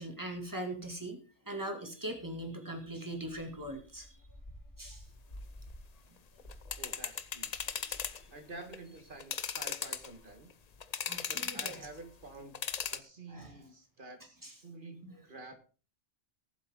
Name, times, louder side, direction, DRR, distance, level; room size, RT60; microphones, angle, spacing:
voice 1, 0.0-4.2 4.8-5.0 7.8-8.1 11.1-11.9 13.3-13.6 14.4-14.6 15.0-15.1, right 1 dB, 15° right, 3 dB, 2.3 m, -41 dB
sound 1, 3.3-8.7 9.0-10.7, left 1 dB, 60° left, 3.1 m, -53 dB
sound 2, 6.4-8.2 8.6-8.8 9.2-10.3 10.8-11.9 12.5-13.0, left 7 dB, 45° left, 0.7 m, -37 dB
voice 2, 6.8-7.5 8.3-10.5 11.3-12.6 12.9-15.5, right 2 dB, 50° right, 7 dB, 1.8 m, -49 dB
19.0 x 7.6 x 3.7 m, 0.36 s
omnidirectional pair, 1.2 m